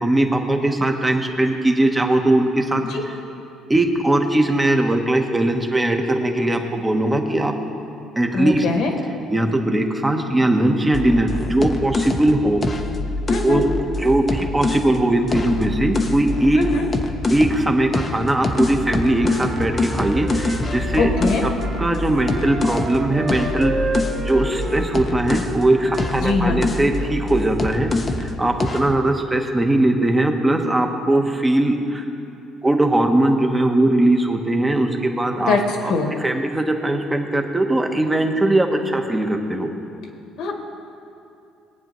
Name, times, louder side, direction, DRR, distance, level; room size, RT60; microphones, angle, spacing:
voice 1, 0.0-3.2 3.7-7.5 8.2-8.6 9.3-12.6 13.4-13.7 14.0-16.6 17.3-21.1 21.4-21.5 21.8-23.7 24.2-27.9 28.2-32.1 32.6-35.6 35.8-35.9 36.2-39.7, right 1 dB, 10° right, 3 dB, 1.0 m, -20 dB
voice 2, 8.3-8.9 13.3-13.6 16.5-16.9 21.0-21.5 26.2-26.6 35.5-36.1 40.4-40.5, left 4 dB, 70° left, 2 dB, 1.6 m, -22 dB
sound 1, 10.9-14.9 15.3-17.6 17.9-25.6 25.9-28.3 28.6-28.9, left 2 dB, 25° left, 0.7 m, -25 dB
Wind instrument woodwind instrument, 18.2-26.2, right 2 dB, 35° right, 1.5 m, -32 dB
20.5 x 9.1 x 3.1 m, 2.6 s
cardioid pair, 130°, 0 cm